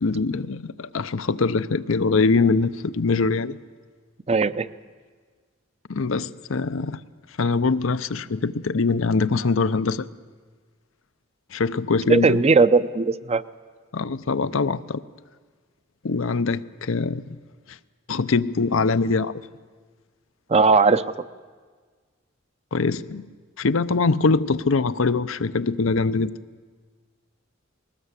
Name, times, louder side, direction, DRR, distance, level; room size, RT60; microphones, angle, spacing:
voice 1, 0.0-3.6 5.9-7.0 7.4-10.1 11.5-12.4 13.9-15.0 16.0-17.4 17.7-17.8 18.1-19.3 22.7-23.3 23.6-26.3, left 4 dB, 90° left, 12 dB, 0.7 m, -23 dB
voice 2, 4.3-4.7 12.1-13.4 20.5-21.0, right 4 dB, 30° right, 14 dB, 0.6 m, -18 dB
20.5 x 19.0 x 8.2 m, 1.5 s
head